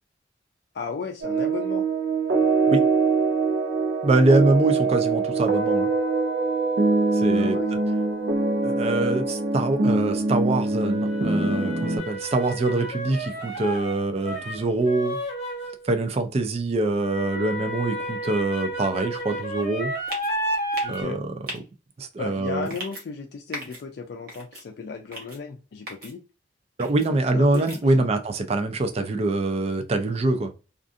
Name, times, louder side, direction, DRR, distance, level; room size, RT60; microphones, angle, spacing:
voice 1, 0.7-1.8 7.3-7.7 8.8-9.1 20.8-21.2 22.2-26.2 27.3-27.6 28.0-28.1, left 5 dB, 65° left, 0.3 m, -35 dB
sound 1, 1.2-12.0, right 3 dB, 80° right, 0.6 m, -23 dB
voice 2, 4.0-5.9 7.1-7.6 8.6-15.2 15.8-19.9 20.9-21.6 22.0-22.7 26.8-30.5, right 2 dB, 35° right, 0.4 m, -24 dB
sound 2, 8.0-8.1 10.9-15.9 17.0-21.0, right 1 dB, 40° left, 0.9 m, -31 dB
sound 3, 20.1-20.3 20.7-21.0 21.5-21.6 22.6-23.0 23.5-23.8 24.3-24.6 25.1-25.4 25.9-26.1 26.8-27.1 27.5-27.8, right 1 dB, 55° right, 1.0 m, -37 dB
2.4 x 2.4 x 2.4 m
head